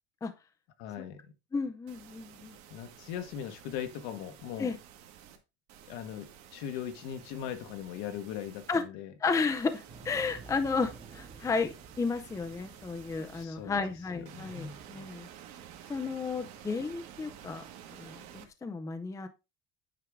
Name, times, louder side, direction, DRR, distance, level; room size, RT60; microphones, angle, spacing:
voice 1, 0.8-1.3 2.7-4.7 5.9-9.1 13.3-13.8 14.1-14.8, left 9 dB, 75° left, 1.5 m, -40 dB
voice 2, 1.5-2.6 4.6-4.8 8.7-8.8 9.2-15.3 15.9-17.6 17.9-19.3, left 4 dB, 10° left, 0.5 m, -33 dB
sound 1, 1.9-5.4 5.7-8.8 9.5-13.4 14.2-18.5, right 10 dB, 55° right, 1.7 m, -52 dB
sound 2, 9.9-14.8, right 4 dB, 15° right, 1.1 m, -52 dB
9.3 x 4.6 x 3.6 m
cardioid pair, 150°, 33 cm